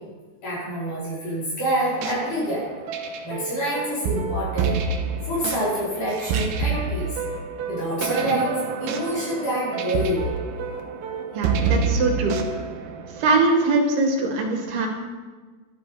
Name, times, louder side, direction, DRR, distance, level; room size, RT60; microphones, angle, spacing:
voice 1, 0.4-2.6 3.2-4.8 5.2-7.2 7.6-10.3, equal, 50° left, -8 dB, 6.0 m, -27 dB
sound 1, 1.8-13.4, right 5 dB, 90° right, 3.3 m, -28 dB
voice 2, 11.3-12.6 13.1-14.9, right 3 dB, 70° right, 1 dB, 4.0 m, -22 dB
12.0 x 11.5 x 5.1 m, 1.4 s
omnidirectional pair, 4.7 m